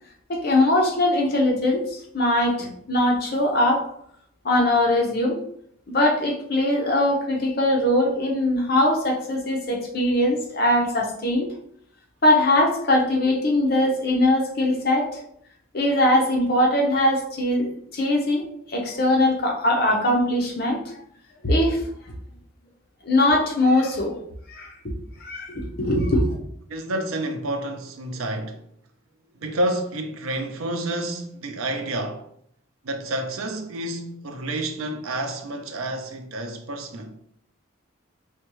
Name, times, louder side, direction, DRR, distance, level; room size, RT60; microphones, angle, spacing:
voice 1, 0.3-3.8 4.4-5.4 5.9-11.5 12.2-15.2 15.7-20.8 21.4-21.8 23.0-24.2 24.5-24.7 25.2-26.4, left 1 dB, 45° left, 0.7 m, -21 dB
voice 2, 26.7-28.6 29.3-32.2 32.8-37.1, right 1 dB, 80° right, 0.6 m, -29 dB
4.3 x 2.2 x 3.0 m
head